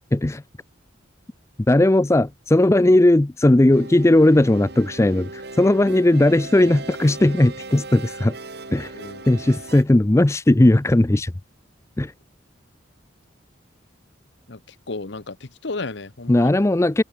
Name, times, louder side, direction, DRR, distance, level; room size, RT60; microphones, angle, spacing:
voice 1, 0.1-0.4 1.7-8.4 8.7-8.9 9.3-11.3 12.0-12.1 16.3-17.0, left 1 dB, 15° left, 0.4 m, -17 dB
sound 1, 3.7-9.8, right 2 dB, 55° right, 2.7 m, -38 dB
voice 2, 14.9-16.5, left 3 dB, 60° left, 1.0 m, -33 dB
head